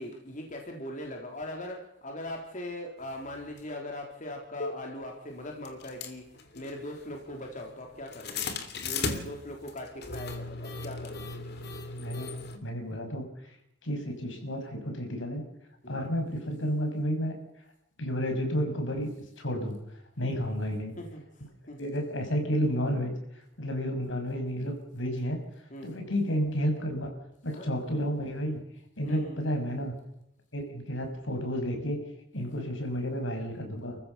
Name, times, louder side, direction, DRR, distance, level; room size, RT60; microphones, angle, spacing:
voice 1, 0.0-8.5 8.8-11.8 15.8-16.1 20.2-20.4 21.0-21.9 25.7-26.2 27.5-27.8 29.0-29.5 32.6-32.7, left 1 dB, 45° left, 1 dB, 3.7 m, -41 dB
sound 1, 3.6-3.7 4.6-4.7 5.6-12.6, left 4 dB, 60° left, 2.9 m, -37 dB
voice 2, 11.9-13.2 13.8-15.4 15.9-17.3 18.0-19.8 20.2-21.0 21.8-23.1 23.6-25.4 25.8-27.1 27.4-28.6 29.0-29.9 30.5-32.0 32.3-34.0, equal, 80° left, 4 dB, 6.2 m, -31 dB
30.0 x 15.0 x 6.9 m, 0.80 s
head